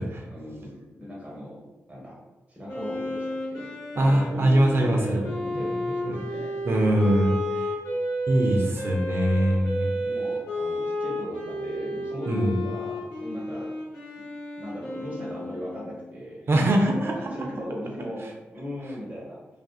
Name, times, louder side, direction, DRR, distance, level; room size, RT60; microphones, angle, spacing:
voice 1, 0.3-1.6 1.9-2.2 2.5-4.5 4.8-6.6 9.6-13.7 14.1-14.2 14.5-16.5 16.9-18.3 18.5-19.4, equal, 30° right, -5 dB, 1.3 m, -38 dB
Wind instrument woodwind instrument, 2.7-16.1, left 1 dB, 90° left, 0.9 m, -32 dB
voice 2, 4.0-5.2 5.6-5.7 6.0-6.2 6.6-7.7 8.3-9.9 12.3-12.6 16.5-17.1, right 1 dB, 50° right, 1 dB, 0.6 m, -22 dB
2.5 x 2.3 x 2.3 m, 1.1 s
supercardioid pair, 40°, 5 cm